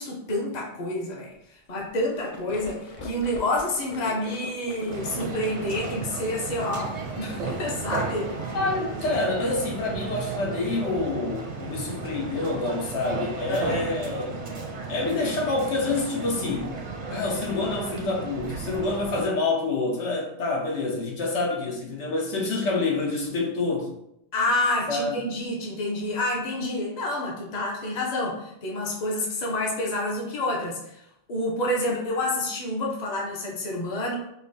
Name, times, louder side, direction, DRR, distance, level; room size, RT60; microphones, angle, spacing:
voice 1, 0.0-1.3 1.7-8.3 13.5-13.7 24.3-31.0 31.3-34.2, left 1 dB, 40° left, -2 dB, 0.8 m, -28 dB
sound 1, 2.0-10.9, left 2 dB, 65° left, 0.3 m, -42 dB
sound 2, 4.9-19.3, right 4 dB, 50° right, 0.5 m, -34 dB
voice 2, 8.5-14.4 14.9-16.7 17.1-23.9 24.9-25.2, left 3 dB, 85° left, -1 dB, 1.1 m, -27 dB
5.3 x 2.2 x 2.6 m, 0.77 s
omnidirectional pair, 1.2 m